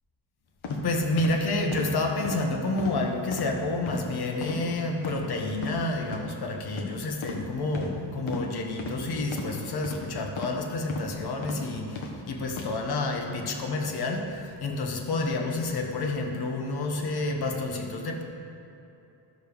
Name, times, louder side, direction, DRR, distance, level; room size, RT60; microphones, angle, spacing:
sound 1, 0.6-0.8 1.2-1.3 1.7-1.9 2.2-2.4 2.8-3.0 3.3-3.5 3.9-4.0 4.4-4.6 5.0-5.2 5.6-5.7 6.1-6.3 6.7-6.9 7.2-7.4 7.7-7.9 8.3-8.4 8.8-9.0 9.3-9.5 9.8-10.0 10.4-10.6 10.9-11.1 11.4-11.6 12.0-12.1 12.5-12.7, left 4 dB, 80° left, 1.4 m, -35 dB
voice 1, 0.7-18.2, left 2 dB, 55° left, 3 dB, 1.2 m, -29 dB
14.5 x 6.3 x 3.5 m, 2.9 s
wide cardioid pair, 160°, 46 cm